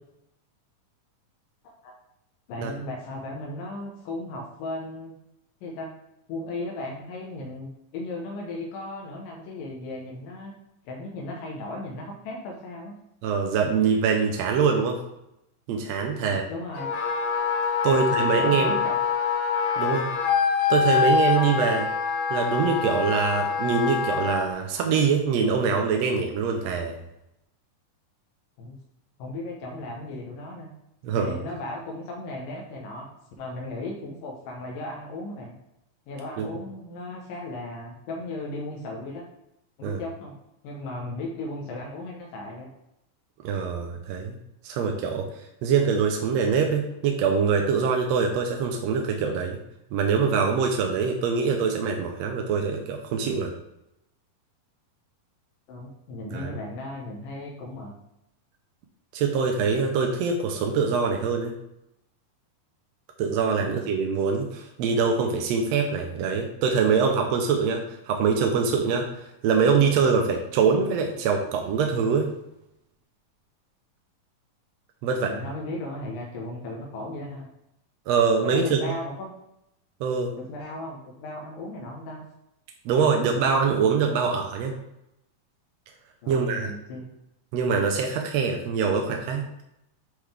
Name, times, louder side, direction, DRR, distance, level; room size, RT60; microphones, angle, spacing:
voice 1, 2.5-5.1 5.6-5.9 6.3-10.5 10.9-12.9 16.2-16.9 17.8-19.0 28.6-28.8 29.2-30.7 31.1-33.1 33.4-35.5 36.1-39.3 39.8-40.3 40.6-42.7 55.7-57.9 63.6-63.9 75.1-77.5 78.4-79.3 80.3-82.2 86.2-87.1, left 2 dB, 85° left, -1 dB, 2.7 m, -36 dB
voice 2, 13.2-15.0 15.7-16.4 17.8-18.7 19.8-20.1 20.7-21.9 22.3-27.0 31.0-31.4 36.4-36.5 39.8-40.0 43.4-44.4 44.6-45.3 45.6-49.6 49.9-53.5 56.3-56.6 59.1-61.5 63.2-72.3 75.0-75.3 78.1-78.8 80.0-80.3 82.8-84.7 86.3-86.7 87.5-89.5, right 5 dB, 80° right, 3 dB, 1.5 m, -24 dB
Wind instrument woodwind instrument, 16.8-24.5, left 6 dB, 70° left, 2.0 m, -25 dB
9.4 x 3.8 x 3.4 m, 0.84 s
omnidirectional pair, 3.8 m